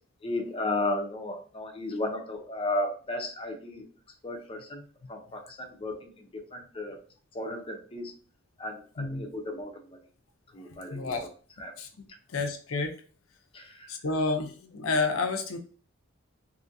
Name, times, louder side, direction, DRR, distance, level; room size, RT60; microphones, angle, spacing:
voice 1, 0.2-3.9 4.2-4.8 5.1-7.0 7.3-8.1 8.6-10.0 10.5-11.1 11.6-11.7 13.5-13.9, left 2 dB, 25° left, 2 dB, 0.6 m, -34 dB
voice 2, 10.9-11.3 11.8-11.9 12.3-13.0 13.9-15.6, left 3 dB, 75° left, 5 dB, 0.5 m, -30 dB
2.6 x 2.6 x 2.5 m, 0.41 s
head